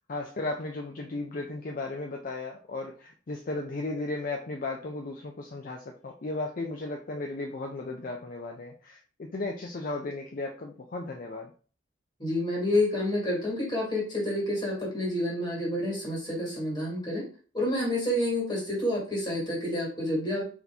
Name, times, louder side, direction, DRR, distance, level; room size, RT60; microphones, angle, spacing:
voice 1, 0.1-11.5, left 2 dB, 45° left, 2 dB, 0.5 m, -35 dB
voice 2, 12.2-17.3 17.5-20.4, left 1 dB, 25° left, -3 dB, 1.9 m, -29 dB
4.1 x 2.9 x 3.4 m, 0.39 s
head